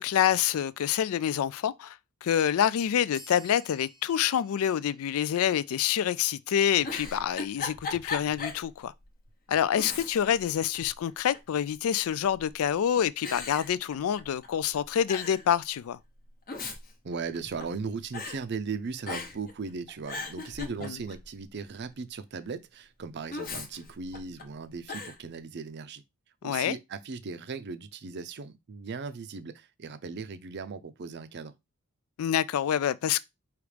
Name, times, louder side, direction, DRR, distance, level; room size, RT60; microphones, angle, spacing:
voice 1, 0.0-8.9 9.5-16.0 20.8-21.0 26.4-26.8 32.2-33.2, left 9 dB, 70° left, 0.3 m, -27 dB
sound 1, 3.1-6.2, equal, 15° left, 1.0 m, -54 dB
Giggle, 6.8-8.7 9.0-9.1 9.7-10.4 10.7-11.5 12.3-12.7 13.2-14.5 14.7-14.8 15.1-15.5 16.3-17.8 18.1-18.4 19.0-19.5 19.9-21.3 23.3-24.4 24.9-25.2, left 3 dB, 40° left, 0.8 m, -38 dB
voice 2, 17.0-26.0 26.4-31.5, right 5 dB, 50° right, 0.5 m, -38 dB
4.9 x 3.0 x 3.3 m
head